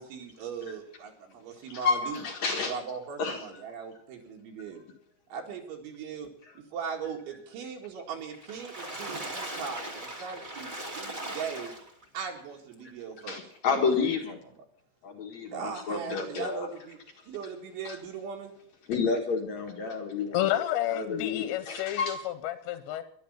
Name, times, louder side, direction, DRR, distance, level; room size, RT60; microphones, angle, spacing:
voice 1, 0.0-2.2 2.7-4.8 5.3-6.3 6.7-11.7 12.1-13.4 15.5-17.0 17.3-18.5, right 6 dB, 85° right, 4.6 m, -39 dB
voice 2, 1.7-2.8 3.2-3.4 13.2-14.4 15.0-16.7 17.8-18.0 18.9-20.5 20.9-22.2, left 5 dB, 55° left, 2.2 m, -30 dB
Water / Splash splatter, 8.3-12.2 12.7-12.8 13.2-13.3, right 1 dB, 45° right, 0.6 m, -38 dB
voice 3, 20.3-23.0, left 13 dB, 85° left, 3.0 m, -30 dB
12.0 x 11.0 x 8.6 m
omnidirectional pair, 5.2 m